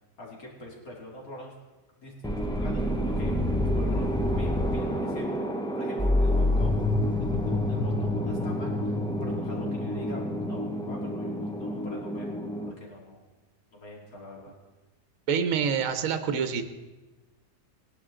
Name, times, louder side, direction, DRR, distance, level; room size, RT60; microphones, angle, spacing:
voice 1, 0.2-1.5 2.0-3.3 3.6-5.5 5.7-6.9 7.2-12.3 12.6-13.2 13.7-14.5, left 1 dB, 65° left, -2 dB, 3.0 m, -45 dB
sound 1, 2.2-12.7, left 1 dB, 5° left, 0.3 m, -28 dB
voice 2, 15.3-16.6, right 7 dB, 60° right, 8 dB, 1.2 m, -26 dB
19.0 x 11.0 x 3.8 m, 1.2 s
omnidirectional pair, 1.7 m